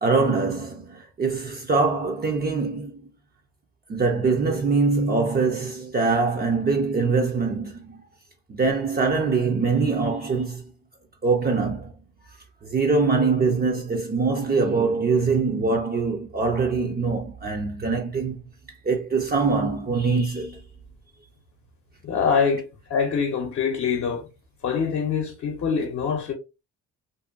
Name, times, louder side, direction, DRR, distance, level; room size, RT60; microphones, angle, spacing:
voice 1, 0.0-2.9 3.9-8.0 8.5-10.6 11.2-11.9 12.6-18.4 18.9-20.6, right 4 dB, 30° right, 0.5 m, -23 dB
voice 2, 22.0-22.6 22.9-24.3 24.6-26.3, left 6 dB, 55° left, 0.7 m, -24 dB
2.6 x 2.2 x 2.5 m
cardioid pair, 90°, 30 cm